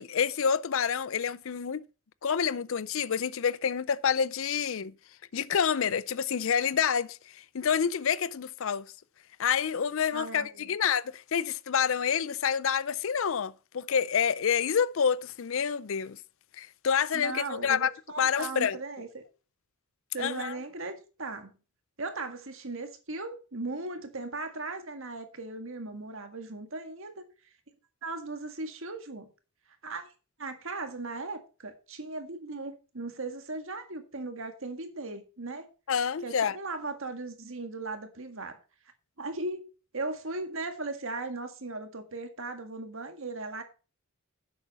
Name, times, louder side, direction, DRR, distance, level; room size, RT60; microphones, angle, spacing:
voice 1, 0.0-1.8 2.2-4.9 5.3-8.9 9.4-16.2 16.6-17.9 18.2-18.8 20.2-20.6 35.9-36.6, left 7 dB, 65° left, 0.5 m, -28 dB
voice 2, 10.1-10.7 17.1-19.2 20.1-21.5 22.0-27.2 28.0-29.3 29.8-30.1 30.4-35.7 36.2-38.6 39.2-39.7 39.9-43.6, right 3 dB, 65° right, 1.8 m, -37 dB
11.0 x 7.9 x 4.2 m
head